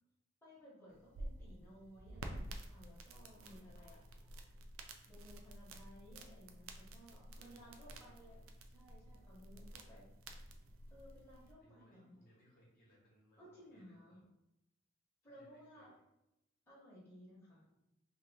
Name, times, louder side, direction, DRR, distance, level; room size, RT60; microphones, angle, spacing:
voice 1, 0.4-4.0 5.1-8.4 8.7-10.0 10.9-12.2 13.4-14.2 15.2-15.9 16.7-17.7, equal, 10° left, -8 dB, 0.9 m, -59 dB
sound 1, 0.9-11.5, right 1 dB, 75° right, 0.4 m, -51 dB
voice 2, 3.3-4.6 7.3-8.5 9.5-10.0 11.6-14.2 15.2-15.9, equal, 45° left, -5 dB, 1.0 m, -68 dB
2.8 x 2.7 x 3.4 m, 0.86 s
head